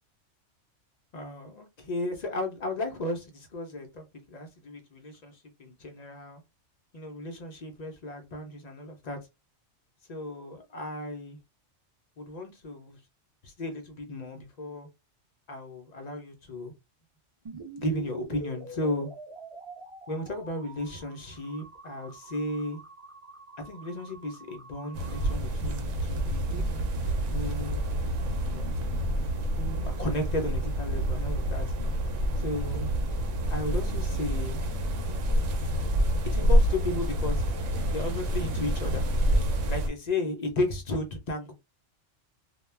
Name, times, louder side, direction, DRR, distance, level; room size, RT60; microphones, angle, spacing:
voice 1, 1.1-6.4 6.9-9.2 10.1-11.4 12.2-13.0 13.4-14.9 15.5-16.7 17.8-19.1 20.1-22.8 23.6-26.7 27.3-27.8 28.5-28.7 29.6-31.7 32.4-32.9 33.5-34.6 36.3-37.4 37.9-39.0 39.7-41.5, left 1 dB, 60° left, 0.4 m, -34 dB
sound 1, 17.5-25.3, right 2 dB, 45° right, 0.4 m, -45 dB
sound 2, 24.9-39.9, equal, 75° right, 0.9 m, -28 dB
2.2 x 2.1 x 3.1 m
omnidirectional pair, 1.3 m